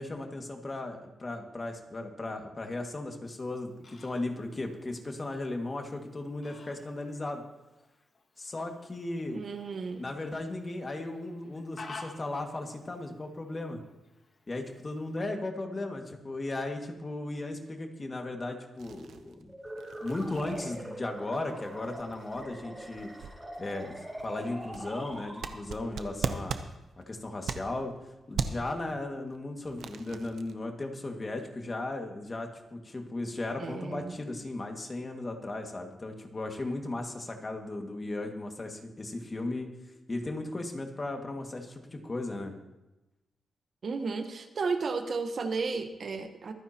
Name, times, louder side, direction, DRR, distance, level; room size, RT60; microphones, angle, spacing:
voice 1, 0.0-7.4 8.4-9.4 10.0-13.8 14.5-19.5 20.0-23.1 23.6-26.6 27.1-27.9 28.3-39.7 40.1-42.5, left 2 dB, 35° left, 3 dB, 2.1 m, -36 dB
Fowl, 3.3-15.2, left 3 dB, 55° left, 2.0 m, -53 dB
voice 2, 9.3-10.1 33.6-34.2 43.8-46.5, right 4 dB, 65° right, 6 dB, 1.2 m, -33 dB
sound 1, 18.8-28.0 28.3-28.8 29.3-30.5, right 6 dB, 85° right, 0.8 m, -39 dB
sound 2, 19.5-26.0, right 1 dB, 10° right, 3.5 m, -43 dB
24.5 x 9.6 x 3.0 m, 1.0 s
cardioid pair, 70°, 0 cm